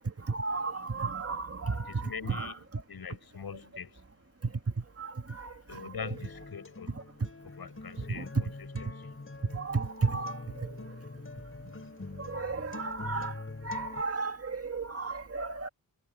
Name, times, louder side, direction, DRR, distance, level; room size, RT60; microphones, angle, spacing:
voice 1, 0.3-2.5 5.0-5.5 8.1-8.4 9.5-10.7 12.2-13.3 13.6-15.7, right 4 dB, 40° right, 2.1 m, -33 dB
voice 2, 1.7-4.0 5.6-9.2 12.0-12.1, left 6 dB, 75° left, 7.9 m, -43 dB
Acoustic guitar, 6.0-14.0, left 3 dB, 35° left, 6.0 m, -44 dB
wide cardioid pair, 75°, 37 cm